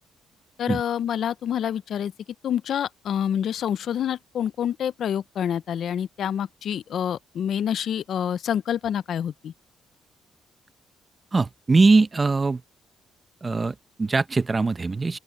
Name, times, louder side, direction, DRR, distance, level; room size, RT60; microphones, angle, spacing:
voice 1, 0.6-2.1 2.4-9.5, left 9 dB, 65° left, 0.7 m, -27 dB
voice 2, 11.3-12.6 13.4-15.2, right 3 dB, 25° right, 1.1 m, -21 dB
open air
cardioid pair, 90°, 0 cm